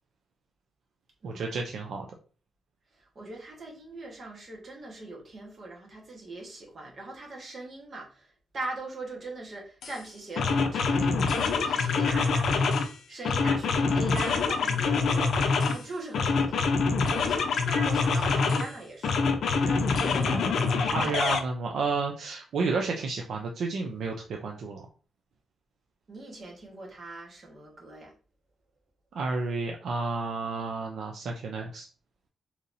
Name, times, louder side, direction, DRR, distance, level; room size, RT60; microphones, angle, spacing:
voice 1, 1.2-2.0 11.6-12.0 20.9-24.9 29.1-31.9, right 4 dB, 65° right, 1 dB, 0.5 m, -31 dB
voice 2, 2.9-12.7 13.1-16.8 17.1-19.2 19.5-21.2 26.1-28.1, right 2 dB, 40° right, -1 dB, 1.3 m, -41 dB
sound 1, 9.8-10.0 10.4-12.9 13.2-15.8 16.1-18.7 19.0-21.4, left 4 dB, 60° left, 0.5 m, -25 dB
3.9 x 2.9 x 2.6 m, 0.38 s
wide cardioid pair, 160°, 0 cm